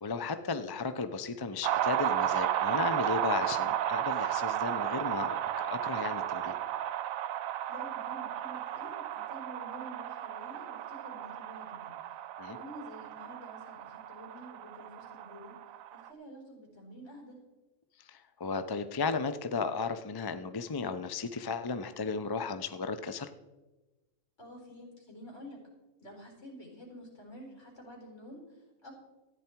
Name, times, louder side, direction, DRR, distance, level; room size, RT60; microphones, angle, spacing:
voice 1, 0.0-5.4 5.6-6.6 12.4-12.6 18.1-23.3, left 4 dB, 35° left, 10 dB, 0.3 m, -34 dB
sound 1, 1.6-16.1, right 11 dB, 85° right, 1.0 m, -34 dB
voice 2, 7.7-11.9 12.5-15.6 15.9-17.4 24.4-25.6 26.0-28.9, equal, 60° left, 0 dB, 4.6 m, -49 dB
14.0 x 9.8 x 4.5 m, 1.1 s
omnidirectional pair, 1.4 m